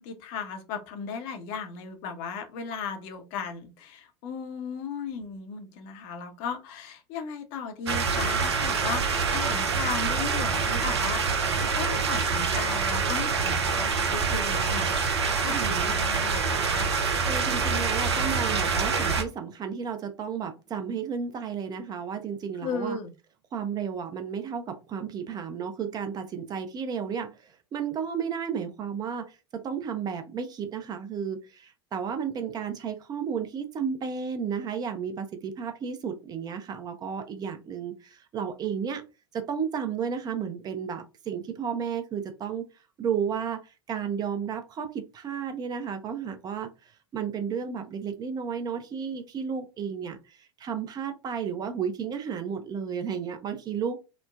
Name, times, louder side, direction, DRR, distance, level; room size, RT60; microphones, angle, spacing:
voice 1, 0.0-16.9 22.6-23.1, left 5 dB, 50° left, 0.6 m, -36 dB
sound 1, 7.9-19.2, right 5 dB, 80° right, 0.5 m, -26 dB
voice 2, 15.5-15.9 17.3-23.0 23.5-39.0 39.3-42.7 43.0-54.0, right 7 dB, 30° right, 0.5 m, -33 dB
3.0 x 2.0 x 2.3 m
figure-of-eight pair, 85°, 14 cm